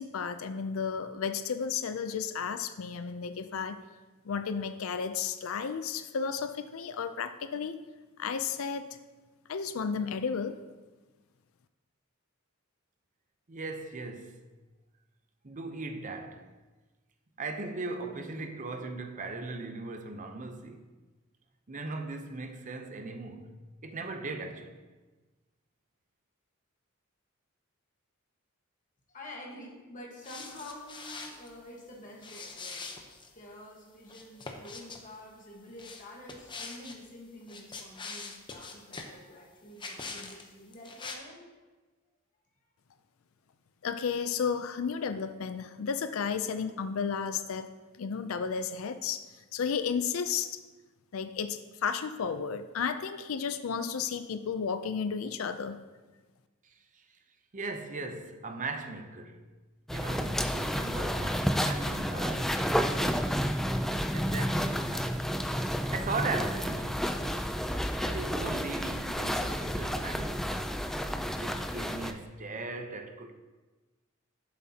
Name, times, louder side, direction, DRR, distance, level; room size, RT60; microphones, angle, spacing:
voice 1, 0.0-3.8 4.3-7.8 8.2-9.0 9.5-10.5 43.8-47.7 48.0-49.3 49.5-50.6 51.1-55.8, left 6 dB, 85° left, 0.5 m, -33 dB
voice 2, 13.5-14.4 15.4-16.5 17.4-20.8 21.7-24.8 56.6-56.7 57.5-59.4 59.9-63.2 64.1-67.1 68.0-70.5 71.3-73.3, right 3 dB, 40° right, 0.7 m, -38 dB
voice 3, 29.1-32.9 33.3-41.5, left 1 dB, 40° left, 1.4 m, -48 dB
sound 1, 30.2-31.5 32.2-33.3 34.1-35.0 35.8-37.0 37.4-39.1 39.8-40.4 40.7-41.1, left 4 dB, 25° left, 0.8 m, -43 dB
sound 2, 59.9-72.1, equal, ahead, 0.3 m, -31 dB
12.0 x 7.3 x 2.8 m
head